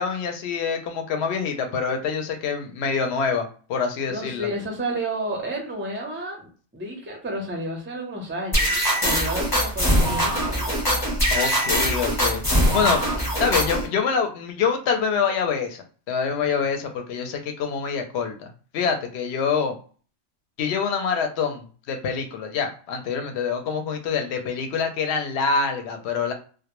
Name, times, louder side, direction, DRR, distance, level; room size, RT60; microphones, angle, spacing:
voice 1, 0.0-4.5 11.3-12.4 12.7-13.0 13.4-18.5 18.7-19.8 20.6-26.3, left 6 dB, 70° left, 4 dB, 0.8 m, -25 dB
voice 2, 4.1-6.5 6.7-10.8, right 1 dB, 20° right, 0 dB, 0.3 m, -31 dB
sound 1, 8.5-13.9, equal, 20° left, 0.8 m, -22 dB
2.1 x 2.1 x 2.9 m, 0.40 s
omnidirectional pair, 1.2 m